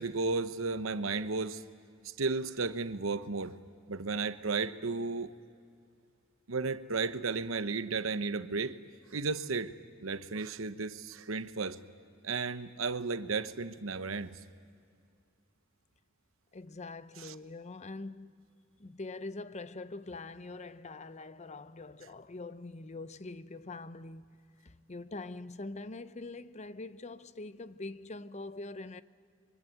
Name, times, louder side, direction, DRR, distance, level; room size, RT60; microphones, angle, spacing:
voice 1, 0.0-1.6 2.0-3.6 3.9-5.3 6.5-8.8 9.1-9.7 10.0-11.8 12.2-14.4 17.2-17.3, right 4 dB, 80° right, 1.0 m, -34 dB
voice 2, 16.5-18.5 18.8-29.0, left 2 dB, 35° left, 0.7 m, -44 dB
24.5 x 23.5 x 9.3 m
head